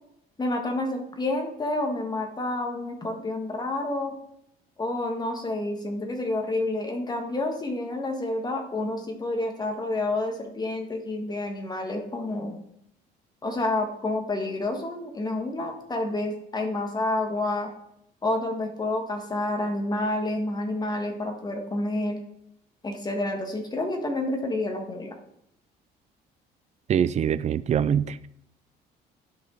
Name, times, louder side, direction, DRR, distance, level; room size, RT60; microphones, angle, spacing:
voice 1, 0.4-4.2 4.8-12.6 13.4-17.7 18.2-22.2 22.8-25.1, left 2 dB, 25° left, 4 dB, 1.8 m, -29 dB
voice 2, 26.9-28.3, right 8 dB, 40° right, 15 dB, 0.5 m, -24 dB
11.5 x 5.3 x 4.0 m, 0.75 s
cardioid pair, 110°, 17 cm